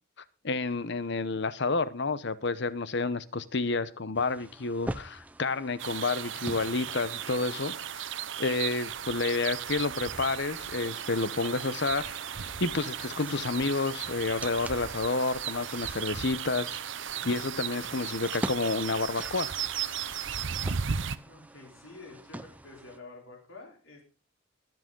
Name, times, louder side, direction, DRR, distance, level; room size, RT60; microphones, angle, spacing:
voice 1, 0.4-7.7 8.4-12.1 12.6-16.8 17.2-19.5, left 3 dB, 60° left, 15 dB, 0.9 m, -30 dB
sound 1, 4.1-7.7 9.8-17.0 17.9-23.0, right 1 dB, 5° right, 0.5 m, -44 dB
sound 2, 5.8-21.2, right 8 dB, 65° right, 0.7 m, -36 dB
voice 2, 21.2-24.0, left 3 dB, 75° left, 0 dB, 4.0 m, -49 dB
22.0 x 7.8 x 3.8 m, 0.35 s
head